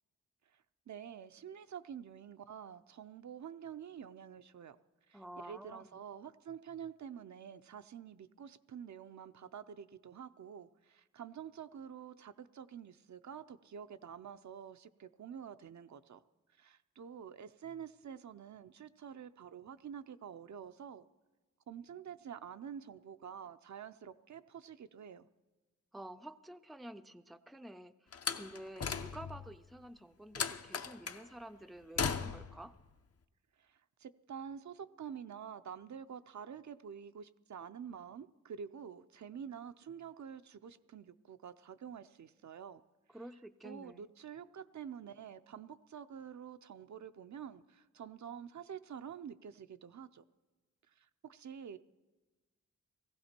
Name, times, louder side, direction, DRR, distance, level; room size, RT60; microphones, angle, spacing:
voice 1, 0.5-4.8 5.1-16.2 16.6-21.1 21.7-25.3 33.6-42.8 43.6-50.2 51.0-51.8, right 8 dB, 70° right, 10 dB, 0.6 m, -48 dB
voice 2, 5.1-6.0 25.9-27.9 28.3-32.7 43.1-44.1, right 1 dB, ahead, 10 dB, 0.5 m, -50 dB
Slam, 28.1-29.5 30.4-31.2 32.0-32.6, left 6 dB, 55° left, 0.8 m, -37 dB
18.0 x 15.5 x 4.4 m, 1.2 s
wide cardioid pair, 90°, 30 cm